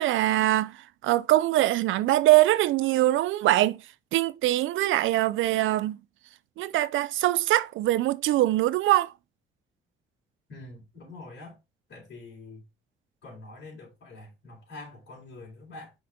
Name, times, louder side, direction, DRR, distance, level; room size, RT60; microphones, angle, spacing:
voice 1, 0.0-3.8 4.1-6.0 6.6-9.1, right 15 dB, 80° right, 0.4 m, -23 dB
voice 2, 10.5-11.6 11.9-12.6 13.2-15.9, left 2 dB, 60° left, 4.0 m, -45 dB
5.8 x 4.9 x 3.7 m
cardioid pair, 90°, 20 cm